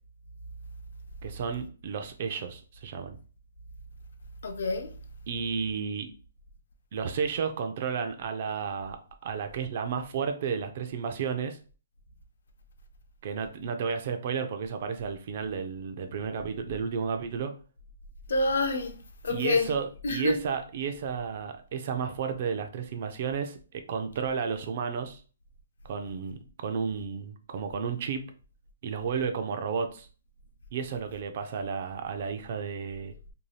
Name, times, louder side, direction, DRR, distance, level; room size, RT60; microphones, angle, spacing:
voice 1, 1.2-3.2 5.3-6.1 6.9-9.0 9.2-11.6 13.2-17.5 19.3-25.2 25.8-28.3 28.8-30.1 30.7-33.1, right 6 dB, 35° right, 0.4 m, -32 dB
voice 2, 4.4-4.9 18.3-19.7 20.0-20.4, left 3 dB, 65° left, 0.5 m, -28 dB
2.6 x 2.2 x 3.1 m
hypercardioid pair, 175°, 0 cm